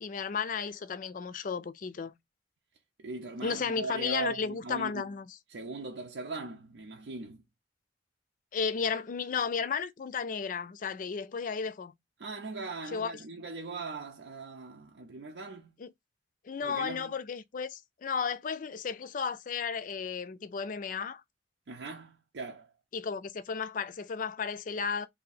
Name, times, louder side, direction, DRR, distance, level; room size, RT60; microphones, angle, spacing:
voice 1, 0.0-2.1 3.4-5.4 8.5-11.9 12.9-13.2 15.8-15.9 16.4-21.2 22.9-25.1, left 6 dB, 50° left, 0.4 m, -34 dB
voice 2, 3.0-5.0 5.5-7.4 12.2-15.7 16.6-17.1 21.7-22.7, right 4 dB, 90° right, 0.6 m, -40 dB
2.8 x 2.6 x 3.9 m
head